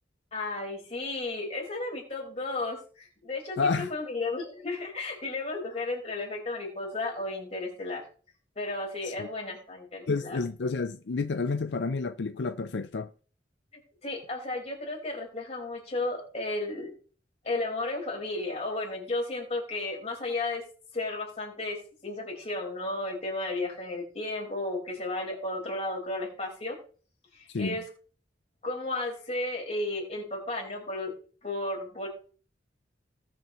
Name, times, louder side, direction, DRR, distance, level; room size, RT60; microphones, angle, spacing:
voice 1, 0.3-8.0 8.5-10.4 14.0-16.9 17.4-20.6 20.9-26.8 27.3-27.8 28.6-31.1 31.4-32.1, left 2 dB, 35° left, 4.8 m, -33 dB
voice 2, 3.6-3.9 9.0-9.3 10.1-13.1 27.5-27.8, left 4 dB, 70° left, 0.5 m, -30 dB
19.5 x 7.0 x 3.1 m
head